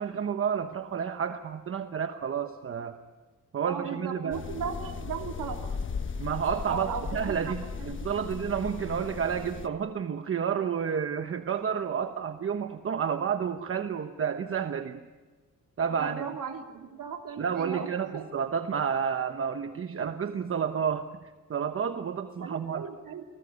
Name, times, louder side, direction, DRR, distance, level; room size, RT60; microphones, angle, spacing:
voice 1, 0.0-3.0 3.5-4.4 6.2-15.0 15.8-16.2 17.4-21.1 21.5-22.9, right 7 dB, 45° right, 8 dB, 1.1 m, -30 dB
voice 2, 3.6-5.7 6.7-8.4 16.0-17.9 18.1-18.3 19.9-20.3 22.4-23.2, right 6 dB, 85° right, 3 dB, 2.8 m, -37 dB
sound 1, 4.3-9.7, left 5 dB, 40° left, 1.3 m, -37 dB
30.0 x 20.0 x 9.7 m, 1.4 s
wide cardioid pair, 160°, 32 cm